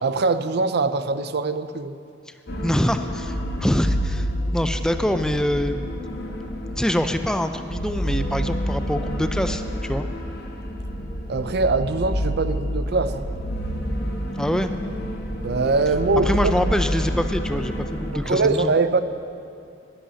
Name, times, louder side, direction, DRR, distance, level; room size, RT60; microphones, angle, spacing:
voice 1, 0.0-2.0 11.3-13.2 15.4-16.4 18.2-19.0, right 3 dB, 55° right, 12 dB, 0.5 m, -22 dB
sound 1, 2.5-18.2, equal, 55° left, 1.5 m, -28 dB
voice 2, 2.6-5.8 6.8-10.0 14.4-14.7 16.2-18.7, equal, 5° left, 8 dB, 0.4 m, -25 dB
11.5 x 11.5 x 6.4 m, 2.5 s
head